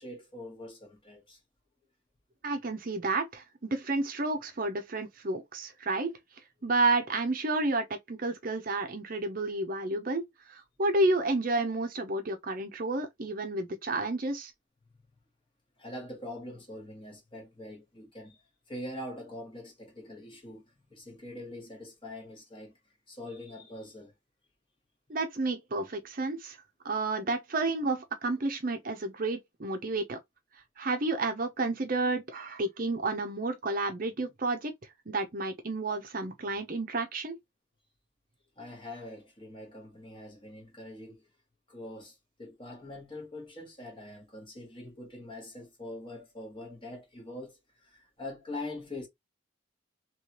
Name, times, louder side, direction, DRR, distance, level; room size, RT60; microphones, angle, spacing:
voice 1, 0.0-1.4 15.8-18.4 18.7-22.8 23.1-24.1 38.6-41.3 41.7-49.1, left 1 dB, 25° left, 1.2 m, -43 dB
voice 2, 2.4-6.2 6.6-14.5 25.1-26.6 26.8-30.2 30.8-34.7 35.1-37.4, right 2 dB, 45° right, 0.6 m, -31 dB
3.2 x 3.0 x 2.9 m
head